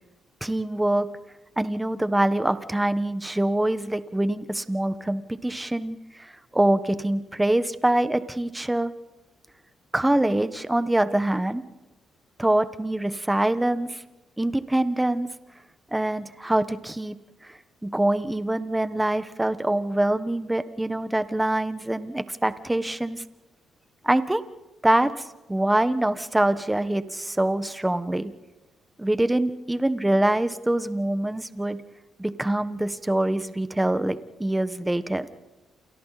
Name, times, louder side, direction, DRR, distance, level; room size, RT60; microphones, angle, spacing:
voice 1, 0.4-1.1 1.6-8.9 9.9-11.6 12.4-14.0 14.4-15.3 15.9-17.2 17.4-17.5 17.8-23.2 24.0-24.4 24.8-25.2 25.5-28.3 29.0-31.8 32.2-35.3, right 1 dB, 10° right, 11 dB, 1.4 m, -24 dB
29.5 x 28.0 x 4.2 m, 1.1 s
cardioid pair, 90°, 0 cm